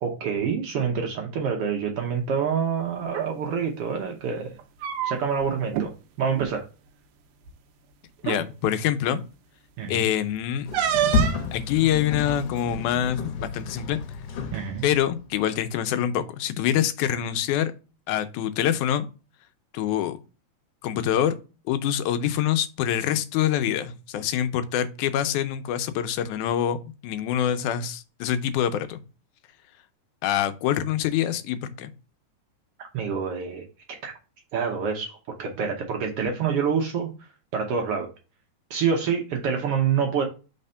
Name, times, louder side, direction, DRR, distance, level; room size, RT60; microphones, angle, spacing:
voice 1, 0.0-4.5 5.0-5.9 6.2-6.6 9.8-10.0 14.5-14.8 32.9-33.6 34.0-34.1 34.5-37.1 37.5-38.1 38.7-40.2, right 6 dB, 65° right, 1.6 m, -26 dB
sound 1, 3.0-3.3 4.5-5.4 5.7-5.9 6.3-6.5 7.5-7.6 8.2-8.5 10.7-11.5, right 10 dB, 85° right, 2.2 m, -26 dB
voice 2, 8.2-9.2 9.9-10.7 11.5-14.0 14.8-17.7 18.1-19.1 19.7-20.2 20.8-21.4 21.7-26.8 27.0-29.0 30.2-31.9, left 10 dB, 85° left, 2.1 m, -25 dB
Sliding door, 10.7-15.1, left 3 dB, 70° left, 1.8 m, -30 dB
4.2 x 4.1 x 5.4 m
omnidirectional pair, 3.4 m